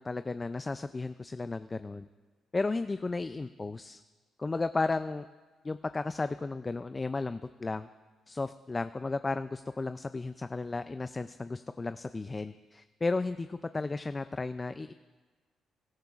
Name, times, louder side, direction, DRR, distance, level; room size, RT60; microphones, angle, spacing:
voice 1, 0.0-2.1 2.5-4.0 4.4-5.3 5.6-7.9 8.3-14.9, left 3 dB, 25° left, 11 dB, 0.3 m, -34 dB
20.5 x 13.0 x 2.4 m, 1.3 s
cardioid pair, 90°, 0 cm